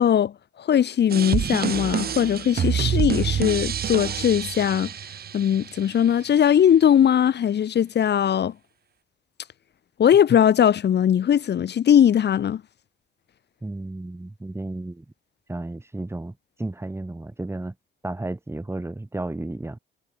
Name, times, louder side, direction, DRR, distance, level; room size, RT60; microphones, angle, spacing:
voice 1, 0.0-4.9 5.3-8.5 10.0-12.6, left 9 dB, 60° left, 2.0 m, -20 dB
sound 1, 1.1-6.1, right 8 dB, 50° right, 1.4 m, -27 dB
voice 2, 13.6-15.0 15.5-17.7 18.0-19.8, right 2 dB, 10° right, 3.3 m, -33 dB
cardioid pair, 90°, 20 cm